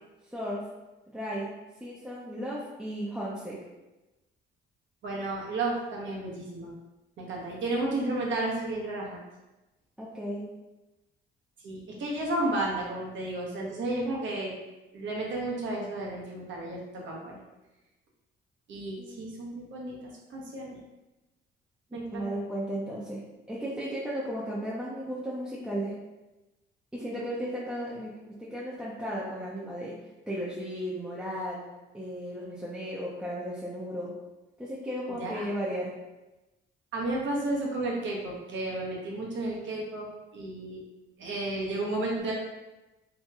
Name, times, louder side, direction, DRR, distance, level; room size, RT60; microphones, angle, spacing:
voice 1, 0.3-0.6 1.1-1.5 1.8-3.6 10.0-10.4 19.0-19.3 21.9-23.2 23.5-26.0 26.9-29.9 30.3-31.6 31.9-34.1 34.6-35.9, equal, 5° right, -7 dB, 0.5 m, -35 dB
voice 2, 5.0-6.7 7.2-9.2 11.6-14.5 14.9-17.4 18.7-20.0 20.3-20.8 21.9-22.3 35.2-35.5 36.9-40.1 40.3-40.8 41.2-42.3, right 2 dB, 70° right, -2 dB, 0.9 m, -32 dB
2.9 x 2.9 x 2.3 m, 1.0 s
cardioid pair, 90°, 20 cm